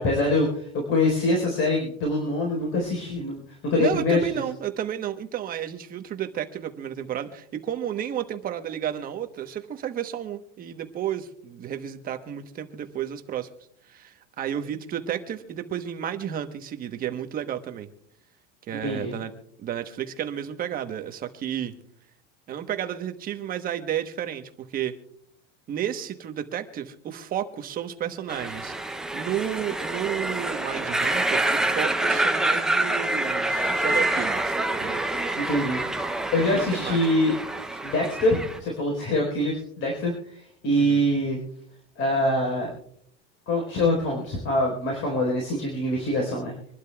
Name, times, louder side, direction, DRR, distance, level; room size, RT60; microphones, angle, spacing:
voice 1, 0.0-4.4 18.8-19.1 35.3-37.3 37.8-41.4 42.0-42.7 43.5-46.5, left 1 dB, 40° left, 0 dB, 4.3 m, -24 dB
voice 2, 3.8-13.5 13.9-17.9 18.7-19.3 19.6-21.7 22.5-24.4 24.7-24.9 25.7-35.0 36.5-37.0 40.8-41.1, right 10 dB, 25° right, 7 dB, 1.1 m, -32 dB
sound 1, 28.3-38.6, right 2 dB, ahead, 0.6 m, -27 dB
26.0 x 12.0 x 2.3 m, 0.70 s
supercardioid pair, 150°, 33 cm